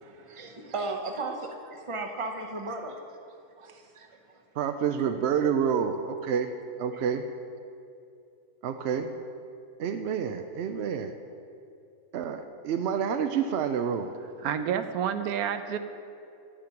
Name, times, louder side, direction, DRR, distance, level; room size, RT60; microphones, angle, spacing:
voice 1, 0.0-3.0 3.6-4.1, right 3 dB, 25° right, 4 dB, 0.8 m, -35 dB
voice 2, 0.7-1.4 2.3-2.5 4.5-6.5 6.8-7.2 8.6-9.1 9.8-11.1 12.1-14.1, right 7 dB, 65° right, 7 dB, 0.7 m, -29 dB
voice 3, 14.4-15.8, right 8 dB, 85° right, 9 dB, 1.1 m, -29 dB
12.5 x 7.6 x 5.8 m, 2.6 s
omnidirectional pair, 1.5 m